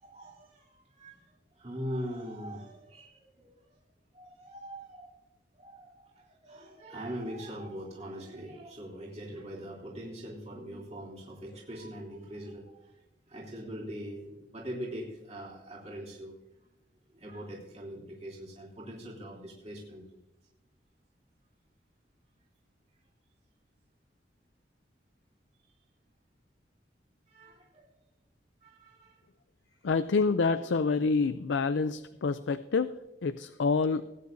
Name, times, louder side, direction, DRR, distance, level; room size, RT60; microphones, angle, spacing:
voice 1, 0.0-1.3 1.5-3.5 4.1-5.1 5.5-13.0 13.3-16.3 17.1-20.0 27.3-27.8 28.6-29.2, equal, 35° right, -4 dB, 3.1 m, -42 dB
voice 2, 29.8-34.0, left 4 dB, 85° left, 12 dB, 0.5 m, -27 dB
20.0 x 9.7 x 2.7 m, 0.98 s
head